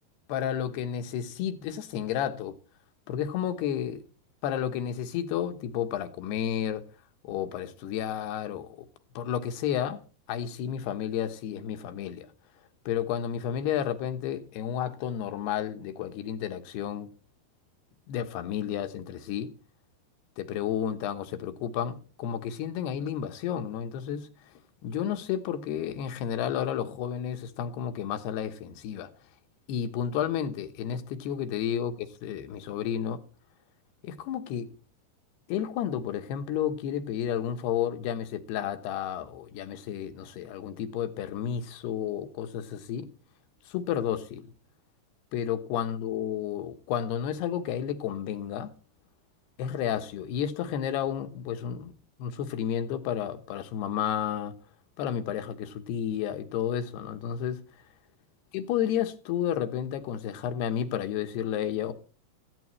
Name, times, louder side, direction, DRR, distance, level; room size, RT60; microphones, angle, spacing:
voice 1, 0.3-2.6 3.1-4.0 4.4-6.8 7.2-8.9 9.2-10.0 10.3-12.3 12.9-17.1 18.1-19.5 20.4-24.3 24.8-29.1 29.7-33.2 34.0-34.7 35.5-43.1 43.7-44.5 45.3-48.7 49.6-51.9 52.2-54.5 55.0-57.6 58.5-61.9, left 9 dB, 80° left, 3.2 m, -31 dB
18.5 x 14.5 x 3.2 m
omnidirectional pair, 4.7 m